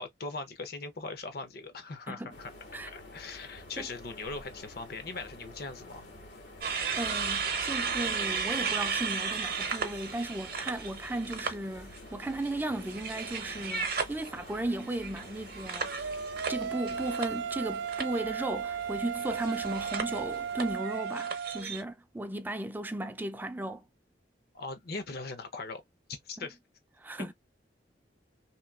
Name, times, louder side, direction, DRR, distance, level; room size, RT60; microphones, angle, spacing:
voice 1, 0.0-2.5 2.9-6.0 24.5-25.8 26.2-26.6, left 3 dB, 60° left, 0.8 m, -40 dB
sound 1, 2.3-20.8, left 1 dB, 90° left, 1.7 m, -50 dB
sound 2, 6.6-11.5 11.9-17.6 17.9-18.2 19.1-21.8, right 5 dB, 55° right, 0.7 m, -35 dB
voice 2, 6.9-16.1 16.5-23.8 26.4-26.5 27.0-27.3, right 1 dB, 10° right, 0.4 m, -36 dB
sound 3, 15.8-21.6, right 7 dB, 80° right, 0.4 m, -35 dB
3.0 x 2.7 x 2.4 m
head